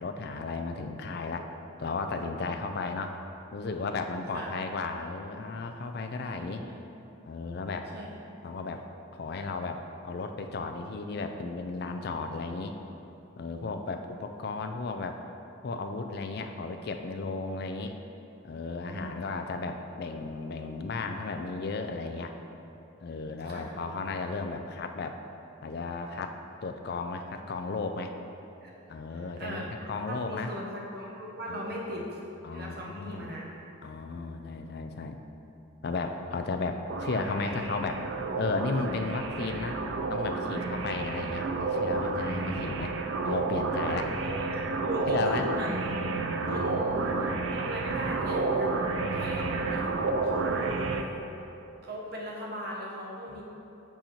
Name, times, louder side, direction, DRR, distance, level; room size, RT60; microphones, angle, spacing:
voice 1, 0.0-1.5 1.8-3.2 3.5-6.6 7.3-7.9 8.4-8.9 9.1-12.8 13.4-15.2 15.6-17.9 18.4-22.3 23.0-25.2 25.6-26.4 26.6-28.1 28.9-30.5 31.5-31.6 32.4-33.4 33.8-35.2 35.8-38.0 38.3-39.8 40.1-43.0 43.2-44.1 45.1-45.5 46.4-47.4 49.1-49.7 53.3-53.4, left 3 dB, 50° left, 6 dB, 0.3 m, -34 dB
voice 2, 6.2-6.8 7.9-8.1 18.9-19.2 23.1-23.7 28.6-28.7 29.1-32.2 32.5-33.6 43.9-46.0 46.5-47.1 47.5-49.9 50.2-51.2 51.8-53.4, equal, 50° right, -3 dB, 0.9 m, -39 dB
sound 1, 36.9-51.0, right 3 dB, 65° right, 0.4 m, -30 dB
7.7 x 4.3 x 2.9 m, 2.9 s
head